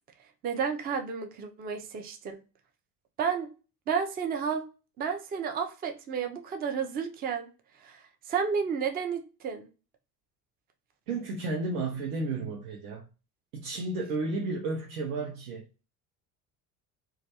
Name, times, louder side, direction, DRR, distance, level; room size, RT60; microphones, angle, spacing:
voice 1, 0.4-2.4 3.2-3.5 3.9-4.6 5.0-7.5 7.8-9.7, right 6 dB, 20° right, 0.4 m, -31 dB
voice 2, 11.1-13.0 13.5-15.6, right 3 dB, 70° right, 0.6 m, -32 dB
2.3 x 2.1 x 2.7 m
hypercardioid pair, 60°, 48 cm